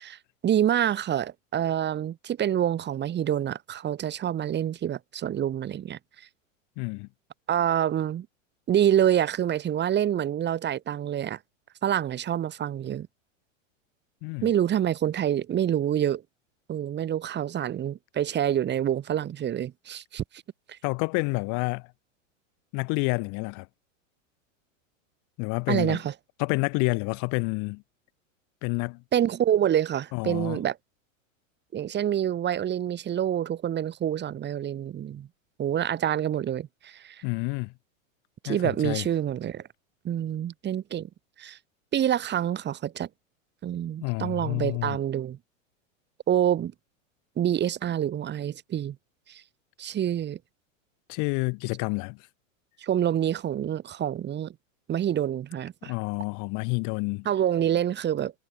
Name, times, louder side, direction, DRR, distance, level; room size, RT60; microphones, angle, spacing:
voice 1, 0.0-6.3 7.5-8.3 8.7-11.4 11.8-13.1 14.4-16.2 16.7-20.4 20.7-20.8 25.7-26.1 29.1-30.8 31.7-35.3 35.6-37.2 38.4-39.6 40.0-41.1 41.4-41.6 41.9-43.1 43.6-45.4 46.3-46.7 47.4-49.0 49.3-49.4 49.8-50.4 52.8-54.5 54.9-55.9 57.2-58.3, right 10 dB, 25° right, 6.5 m, -27 dB
voice 2, 6.8-7.1 14.2-14.5 20.8-21.9 22.7-23.7 25.4-26.0 26.4-27.8 28.6-29.0 30.1-30.6 37.2-37.7 38.4-39.1 44.0-45.0 51.1-52.2 55.9-57.3, left 32 dB, 45° left, 7.5 m, -29 dB
supercardioid pair, 135°, 40 cm